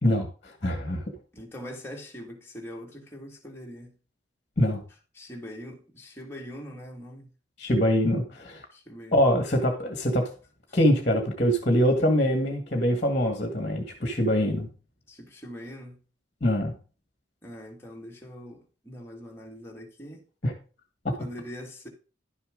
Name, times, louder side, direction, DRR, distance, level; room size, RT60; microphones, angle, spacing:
voice 1, 0.0-1.0 4.6-4.8 7.6-8.6 9.1-10.3 10.7-14.7 16.4-16.7 20.4-20.5, equal, 35° left, 1.8 m, -24 dB
voice 2, 1.3-3.9 5.1-7.3 8.7-9.2 15.1-16.0 17.4-20.2 21.2-21.9, equal, 10° left, 2.1 m, -42 dB
11.5 x 7.1 x 3.8 m
head